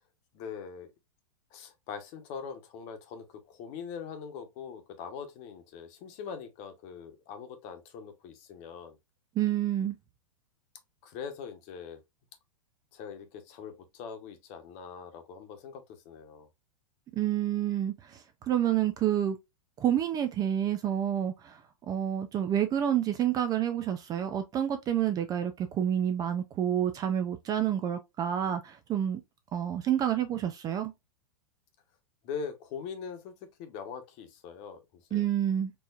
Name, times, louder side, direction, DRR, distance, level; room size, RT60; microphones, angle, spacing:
voice 1, 0.3-0.9 1.5-9.0 11.0-12.0 12.9-16.5 32.2-35.3, left 6 dB, 40° left, 1.1 m, -42 dB
voice 2, 9.4-10.0 17.1-19.4 19.8-21.6 21.9-29.2 29.5-30.9 35.1-35.7, right 10 dB, 20° right, 0.4 m, -29 dB
4.6 x 2.7 x 2.4 m
hypercardioid pair, 135°, 18 cm